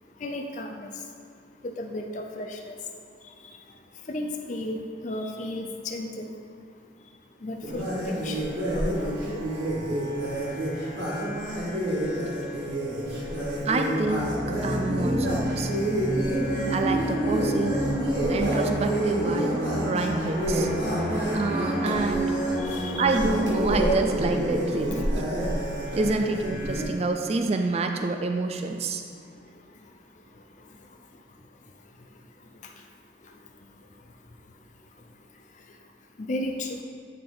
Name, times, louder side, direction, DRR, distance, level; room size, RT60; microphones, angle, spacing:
voice 1, 0.2-0.9 1.6-2.8 3.4-3.5 4.1-6.3 7.4-9.4 22.6-23.1 36.2-36.8, left 1 dB, 40° left, 2 dB, 0.4 m, -34 dB
sound 1, 7.6-26.8, right 1 dB, 65° right, 1.7 m, -28 dB
voice 2, 13.5-15.8 16.7-17.8 18.3-20.7 21.3-22.4 22.9-25.3 25.5-25.6 25.9-29.0, right 3 dB, 35° right, 5 dB, 0.3 m, -28 dB
sound 2, 14.0-25.5, equal, 15° left, 1.6 m, -32 dB
9.3 x 3.5 x 3.9 m, 2.3 s
head